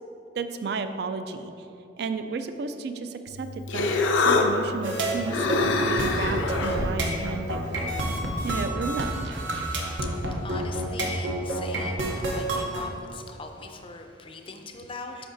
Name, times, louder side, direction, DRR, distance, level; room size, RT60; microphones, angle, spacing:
voice 1, 0.3-1.5 2.0-7.6 8.4-9.3, right 4 dB, 55° right, 9 dB, 0.3 m, -33 dB
Human voice, 3.3-8.5, left 3 dB, 90° left, 0.5 m, -27 dB
sound 1, 4.8-12.8, right 1 dB, 80° right, 0.8 m, -29 dB
voice 2, 9.6-15.3, left 4 dB, 30° left, 4 dB, 0.4 m, -42 dB
8.6 x 5.8 x 2.6 m, 2.7 s
head